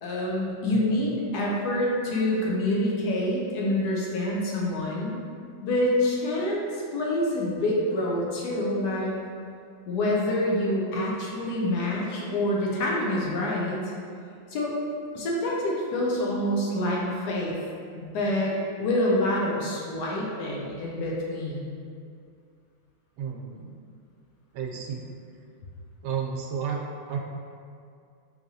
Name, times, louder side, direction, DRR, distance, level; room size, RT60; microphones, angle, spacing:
voice 1, 0.0-5.2 5.6-9.1 9.9-13.9 14.5-14.7 15.1-17.6 18.0-21.7, left 1 dB, 70° left, -4 dB, 1.0 m, -27 dB
voice 2, 0.7-1.1 23.2-23.7 24.5-25.0 26.0-27.2, right 6 dB, 85° right, 0 dB, 1.4 m, -32 dB
4.7 x 3.2 x 2.7 m, 2.3 s
omnidirectional pair, 2.2 m